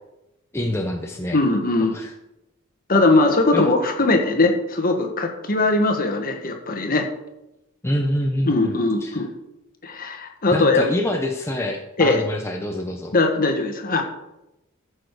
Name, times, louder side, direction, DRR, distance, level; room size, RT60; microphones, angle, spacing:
voice 1, 0.5-1.4 1.9-2.1 3.5-3.6 7.8-9.2 10.5-13.1, left 1 dB, 10° left, 2 dB, 0.8 m, -26 dB
voice 2, 1.3-2.0 2.9-7.1 8.4-9.3 9.8-10.9 12.0-12.2 13.1-14.0, left 2 dB, 45° left, 4 dB, 1.6 m, -20 dB
15.0 x 6.4 x 4.8 m, 0.92 s
head